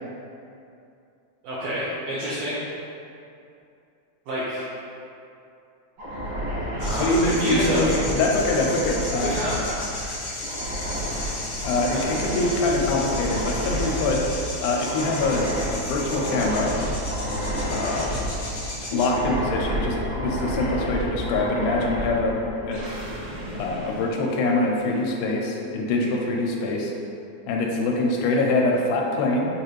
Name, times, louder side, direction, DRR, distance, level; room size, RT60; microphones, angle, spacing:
voice 1, 1.4-2.6 4.3-4.7 6.8-7.8 9.2-10.1 25.9-26.2, right 1 dB, 75° right, -9 dB, 1.5 m, -29 dB
sound 1, 6.0-24.8, equal, 60° right, 2.3 m, -30 dB
sound 2, 6.8-19.1, left 2 dB, 65° left, 1.1 m, -35 dB
voice 2, 6.9-9.3 11.6-14.2 14.6-16.7 17.7-18.2 18.9-22.4 22.6-22.9 23.6-26.9 27.5-29.5, left 2 dB, 90° left, 0 dB, 2.1 m, -24 dB
6.8 x 2.4 x 3.1 m, 2.6 s
omnidirectional pair, 3.6 m